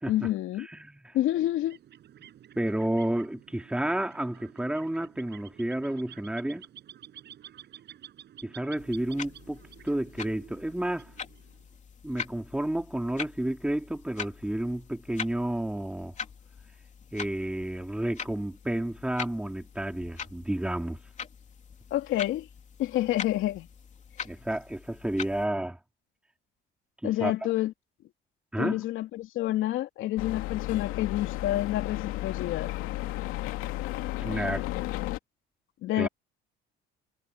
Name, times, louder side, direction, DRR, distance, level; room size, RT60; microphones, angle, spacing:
voice 1, 0.1-0.7 1.1-1.8 21.9-22.5 22.8-23.7 27.0-27.7 28.6-32.7 35.8-36.1, left 14 dB, 70° left, 3.1 m, -28 dB
voice 2, 0.7-1.1 2.5-6.7 8.4-11.1 12.0-16.1 17.1-21.0 24.2-25.8 27.0-27.3 28.5-28.8 34.2-34.6 36.0-36.1, right 1 dB, 5° right, 3.1 m, -31 dB
sound 1, 1.4-11.8, right 10 dB, 55° right, 6.1 m, -51 dB
sound 2, 8.8-25.5, left 6 dB, 35° left, 3.3 m, -43 dB
sound 3, 30.2-35.2, left 17 dB, 85° left, 2.4 m, -33 dB
cardioid pair, 120°, 21 cm